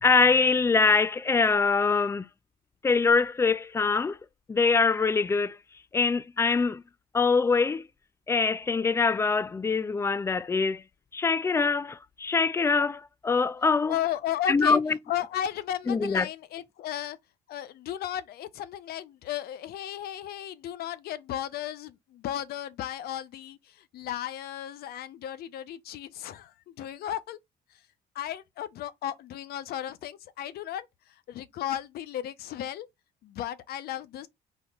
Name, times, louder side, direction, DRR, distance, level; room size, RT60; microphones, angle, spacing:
voice 1, 0.0-2.2 2.8-4.2 4.5-5.6 5.9-6.8 7.1-7.8 8.3-10.8 11.1-13.9 14.5-15.0 15.9-16.3, left 4 dB, 15° left, 0.3 m, -24 dB
voice 2, 13.9-14.8 15.1-17.2 17.5-23.6 23.9-27.4 28.1-30.9 31.3-32.9 33.2-34.3, left 11 dB, 65° left, 0.6 m, -34 dB
4.1 x 2.9 x 3.5 m
cardioid pair, 110°, 17 cm